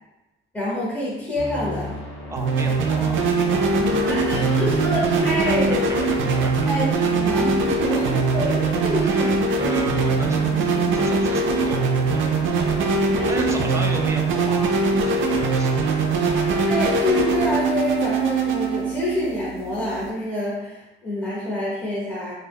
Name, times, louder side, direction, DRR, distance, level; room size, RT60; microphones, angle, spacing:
voice 1, 0.5-2.0 3.8-5.9 6.7-9.6 13.2-13.5 16.6-22.3, left 1 dB, 10° left, -8 dB, 0.8 m, -27 dB
sound 1, 1.3-14.1, left 1 dB, 80° left, 0.7 m, -36 dB
voice 2, 2.3-3.2 3.5-4.5 5.4-6.5 8.9-15.9, right 2 dB, 15° right, 2 dB, 0.4 m, -34 dB
sound 2, 2.4-20.1, right 3 dB, 75° right, 0.4 m, -22 dB
2.1 x 2.1 x 3.4 m, 0.99 s
cardioid pair, 90°, 20 cm